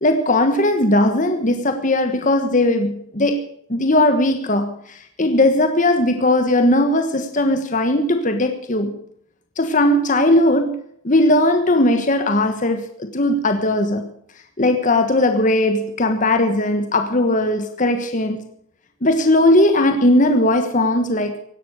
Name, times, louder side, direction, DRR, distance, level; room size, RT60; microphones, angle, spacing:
voice 1, 0.0-3.4 3.7-8.9 9.6-10.8 11.0-14.1 14.6-18.4 19.0-21.4, left 1 dB, 40° left, 1.3 m, -18 dB
17.0 x 11.5 x 6.4 m
head